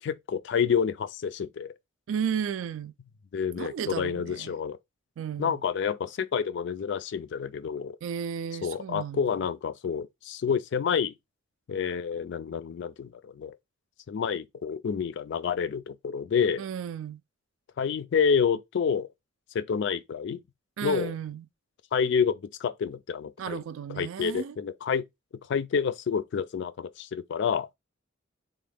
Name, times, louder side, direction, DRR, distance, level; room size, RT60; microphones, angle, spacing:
voice 1, 0.0-1.7 3.3-4.8 5.4-8.0 8.6-11.1 11.7-13.5 14.1-16.6 17.8-19.1 19.5-20.4 20.8-21.1 21.9-23.6 24.0-25.0 25.5-27.7, left 6 dB, 55° left, 0.3 m, -28 dB
voice 2, 2.1-2.9 3.6-4.6 5.2-5.6 8.0-9.2 16.6-17.2 20.8-21.5 23.4-24.6, right 7 dB, 70° right, 0.3 m, -33 dB
3.5 x 2.2 x 3.4 m
head